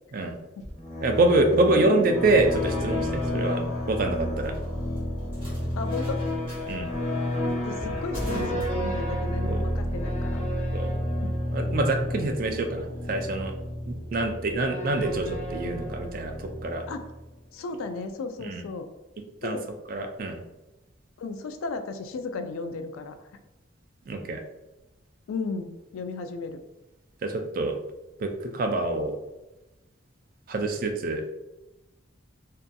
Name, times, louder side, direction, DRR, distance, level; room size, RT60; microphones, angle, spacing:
sound 1, 0.6-17.2, left 1 dB, 35° left, 0.5 m, -31 dB
voice 1, 1.0-3.6 3.9-4.5 6.7-6.9 9.5-9.6 10.7-10.9 11.5-13.5 13.9-16.8 18.4-18.6 19.4-19.6 19.9-20.4 24.1-24.4 27.2-27.7 28.2-29.2 30.5-31.3, right 2 dB, 45° right, 4 dB, 0.3 m, -26 dB
sound 2, 2.2-9.5, equal, 25° right, 1.0 m, -41 dB
voice 2, 5.7-6.2 7.6-10.7 16.9-17.1 17.5-18.9 19.4-19.7 21.2-23.3 25.3-26.6, left 3 dB, 90° left, 8 dB, 0.3 m, -35 dB
2.6 x 2.5 x 2.2 m, 0.99 s
head